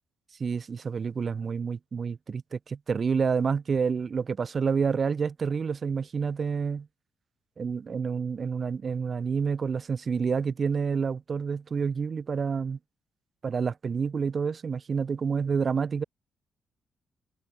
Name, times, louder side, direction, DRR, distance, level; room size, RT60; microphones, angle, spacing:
voice 1, 0.4-6.9 7.6-12.8 13.4-16.0, right 5 dB, 50° right, 2.8 m, -28 dB
hypercardioid pair, 40°, 0 cm